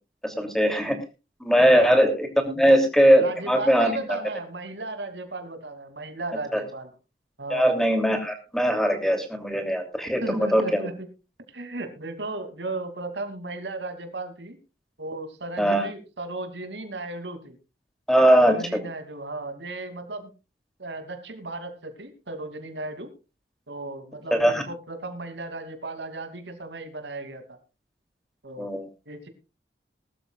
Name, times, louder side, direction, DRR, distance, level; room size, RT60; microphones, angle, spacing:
voice 1, 0.2-1.0 1.4-4.2 6.5-6.6 7.5-10.8 15.6-15.8 18.1-18.6 24.3-24.6 28.6-28.8, equal, ahead, 6 dB, 2.9 m, -20 dB
voice 2, 1.6-2.0 2.6-2.7 3.1-6.9 7.4-7.8 10.2-11.1 11.5-14.6 15.0-17.6 18.3-20.3 20.8-23.1 23.7-27.6 28.4-28.7 29.1-29.3, right 2 dB, 85° right, 8 dB, 2.8 m, -35 dB
20.5 x 13.0 x 2.4 m, 0.30 s
head